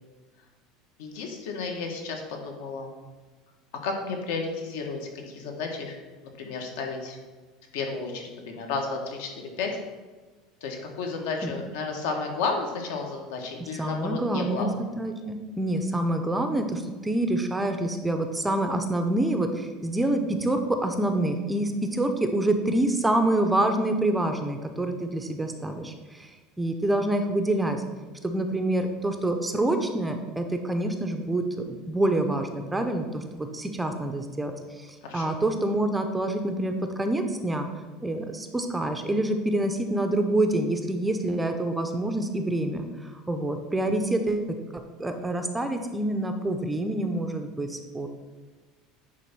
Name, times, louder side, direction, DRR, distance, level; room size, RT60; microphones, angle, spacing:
voice 1, 1.0-2.9 3.8-5.9 6.4-7.2 7.7-9.8 10.6-14.7 35.0-35.3, left 4 dB, 80° left, 2 dB, 1.5 m, -32 dB
voice 2, 13.8-14.7 15.0-26.3 26.6-27.8 28.2-37.7 38.0-44.6 45.0-48.1, right 1 dB, 5° right, 6 dB, 0.4 m, -27 dB
9.2 x 3.4 x 5.8 m, 1.3 s
cardioid pair, 180°, 0 cm